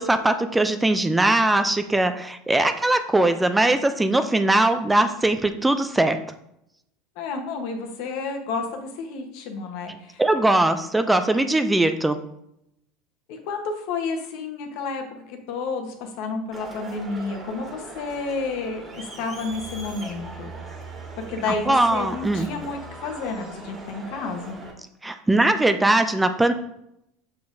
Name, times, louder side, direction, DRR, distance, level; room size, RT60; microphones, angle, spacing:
voice 1, 0.0-6.2 10.2-12.2 21.7-22.5 25.0-26.5, right 2 dB, 10° right, 9 dB, 0.4 m, -20 dB
voice 2, 7.2-10.2 13.3-20.5 21.3-24.6, left 4 dB, 65° left, 4 dB, 1.1 m, -31 dB
Crowd, 16.5-24.7, right 2 dB, 25° right, 1.7 m, -40 dB
6.8 x 5.2 x 2.7 m, 0.78 s
supercardioid pair, 120°, 0 cm